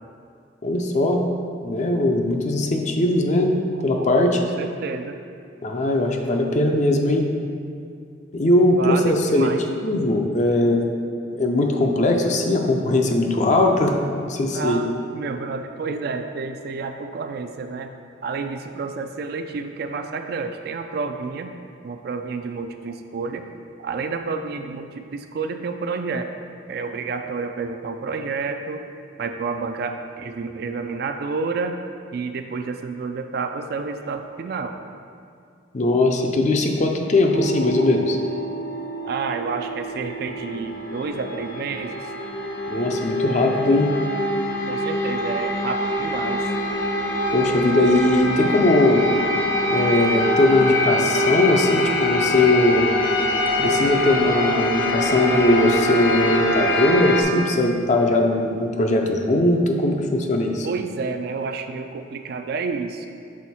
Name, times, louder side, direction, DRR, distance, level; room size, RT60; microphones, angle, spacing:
voice 1, 0.6-1.2 1.6-3.5 3.8-4.4 5.6-7.3 8.3-9.5 9.8-10.9 11.3-14.8 35.7-38.2 42.7-43.9 47.3-49.0 49.7-52.9 53.6-60.7, left 1 dB, 40° left, 3 dB, 0.5 m, -20 dB
voice 2, 4.3-5.2 8.8-9.6 14.5-17.9 18.2-21.5 21.8-23.5 23.8-26.3 26.7-28.8 29.2-31.8 32.1-34.8 37.8-37.9 39.0-42.0 44.7-46.5 60.6-63.1, right 4 dB, 55° right, 6 dB, 0.3 m, -29 dB
sound 1, 37.3-57.2, left 1 dB, 80° left, 0.7 m, -24 dB
6.3 x 3.8 x 4.2 m, 2.3 s
head